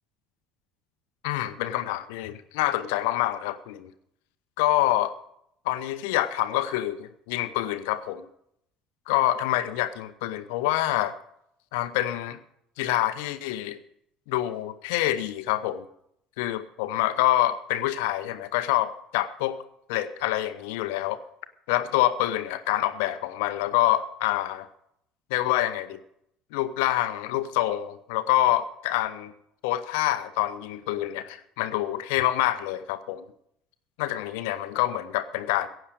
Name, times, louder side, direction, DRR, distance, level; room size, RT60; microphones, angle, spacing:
voice 1, 1.2-3.9 4.6-5.1 5.7-8.3 9.1-11.1 11.7-12.4 12.8-13.8 14.3-15.9 16.4-19.6 19.9-21.2 21.7-24.7 25.3-26.0 26.5-29.3 29.6-33.2 34.0-35.7, left 14 dB, 60° left, 12 dB, 0.7 m, -26 dB
15.5 x 9.0 x 6.4 m, 0.74 s
figure-of-eight pair, 60°, 0 cm